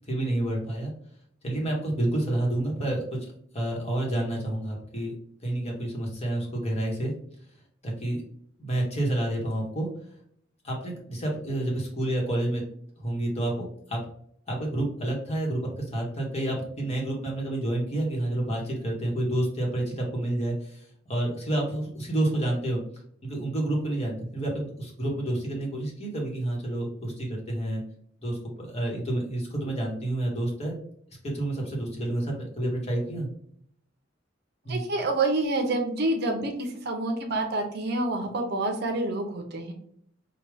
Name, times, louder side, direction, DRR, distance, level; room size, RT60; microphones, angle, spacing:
voice 1, 0.0-0.9 1.4-5.1 5.4-7.1 7.8-8.2 8.6-9.9 10.6-12.6 13.0-14.0 14.5-22.8 23.2-27.8 28.2-30.8 31.2-33.3 34.6-34.8, right 1 dB, 35° left, -1 dB, 1.1 m, -29 dB
voice 2, 34.7-39.7, right 2 dB, 55° right, 3 dB, 0.6 m, -28 dB
4.8 x 2.3 x 3.3 m, 0.65 s
head